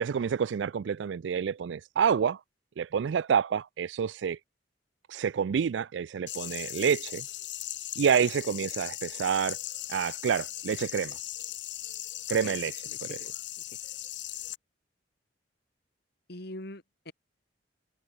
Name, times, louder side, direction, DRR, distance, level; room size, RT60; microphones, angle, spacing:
voice 1, 0.0-2.4 2.8-4.4 5.1-7.3 8.0-9.6 9.9-11.2 12.3-12.7, right 7 dB, 75° right, 0.4 m, -28 dB
sound 1, 6.3-14.6, left 13 dB, 90° left, 3.5 m, -38 dB
voice 2, 12.9-13.3 13.7-13.8 16.3-17.1, left 1 dB, 60° left, 5.0 m, -43 dB
head